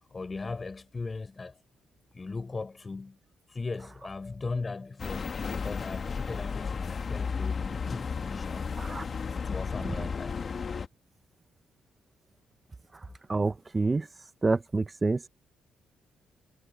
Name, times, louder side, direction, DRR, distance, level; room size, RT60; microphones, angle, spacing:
voice 1, 0.0-1.6 2.1-3.2 3.5-8.8 9.3-10.4, left 3 dB, 25° left, 5.3 m, -38 dB
sound 1, 5.0-10.9, left 5 dB, 40° left, 1.7 m, -33 dB
voice 2, 13.3-14.1 14.4-15.2, right 3 dB, 25° right, 0.8 m, -27 dB
cardioid pair, 90°, 0 cm